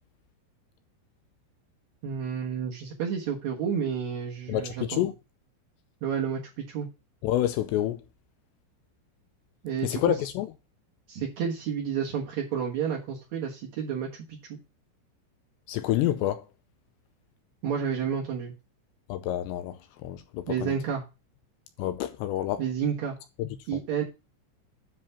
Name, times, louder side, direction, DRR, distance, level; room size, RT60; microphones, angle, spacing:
voice 1, 2.0-5.1 6.0-6.9 9.6-10.0 11.1-14.6 17.6-18.5 20.5-21.0 22.6-23.2 23.7-24.0, right 7 dB, 90° right, 1.5 m, -30 dB
voice 2, 4.5-5.1 7.2-8.0 9.8-10.5 15.7-16.5 19.1-20.7 21.8-22.6 23.4-23.5, left 13 dB, 85° left, 2.5 m, -28 dB
10.0 x 3.5 x 6.9 m
omnidirectional pair, 5.6 m